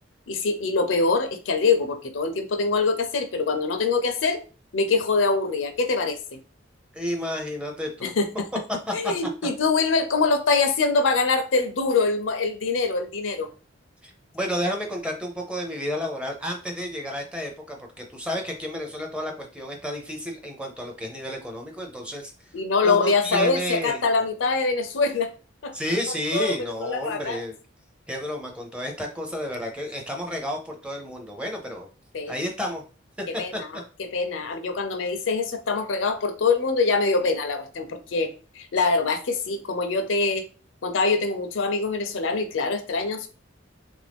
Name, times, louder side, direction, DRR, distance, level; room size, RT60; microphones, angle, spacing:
voice 1, 0.3-4.4 4.7-6.4 8.0-8.3 8.9-13.5 22.5-25.3 25.6-25.7 26.3-26.5 26.8-27.4 32.1-32.3 33.4-38.3 38.6-40.5 40.8-43.3, left 4 dB, 75° left, 8 dB, 0.5 m, -24 dB
voice 2, 6.9-8.1 8.9-9.1 14.0-22.5 22.8-24.0 25.7-27.5 28.1-31.9 32.3-32.8 33.3-33.6, equal, 5° right, 2 dB, 0.5 m, -31 dB
3.2 x 2.6 x 3.4 m, 0.36 s
head